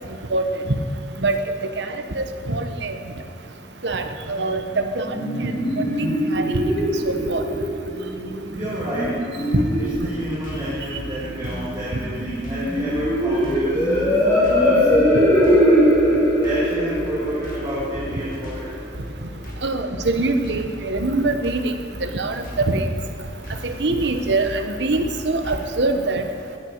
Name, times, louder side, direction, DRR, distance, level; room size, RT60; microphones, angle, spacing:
voice 1, 1.8-3.0 3.8-5.0 5.4-5.5 5.8-6.4 7.1-7.4 9.5-9.6 19.6-21.7 22.0-22.9 23.6-26.2, right 2 dB, 65° right, 7 dB, 1.0 m, -23 dB
sound 1, 4.7-18.7, equal, 10° left, 3.2 m, -21 dB
voice 2, 8.5-9.3 9.8-15.7 16.4-18.8 23.3-24.3, equal, 20° right, -10 dB, 2.5 m, -31 dB
sound 2, 9.9-25.8, left 1 dB, 45° left, 2.2 m, -37 dB
15.5 x 10.5 x 4.6 m, 2.8 s
head